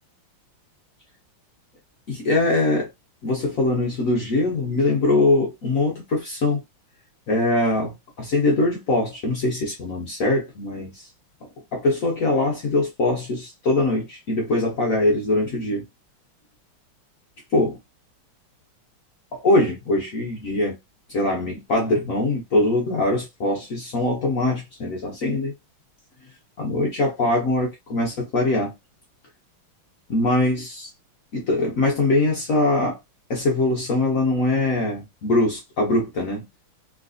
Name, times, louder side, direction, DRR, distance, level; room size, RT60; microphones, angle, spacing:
voice 1, 2.1-2.9 3.2-6.6 7.3-11.1 11.7-15.9 17.5-17.7 19.3-20.8 21.1-25.5 26.6-28.7 30.1-30.9 31.3-33.0 33.3-36.5, left 2 dB, 60° left, 0.9 m, -22 dB
3.1 x 3.1 x 2.5 m
omnidirectional pair, 2.2 m